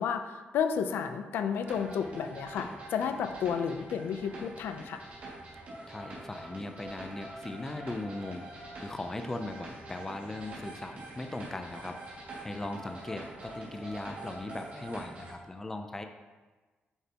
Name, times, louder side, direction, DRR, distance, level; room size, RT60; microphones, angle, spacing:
voice 1, 0.0-5.0, left 7 dB, 85° left, 8 dB, 0.6 m, -32 dB
sound 1, 1.6-15.3, right 2 dB, 45° right, 2.2 m, -45 dB
voice 2, 5.9-12.0 12.4-16.1, left 2 dB, 15° left, 6 dB, 0.4 m, -39 dB
9.0 x 6.8 x 2.9 m, 1.3 s
wide cardioid pair, 180°, 4 cm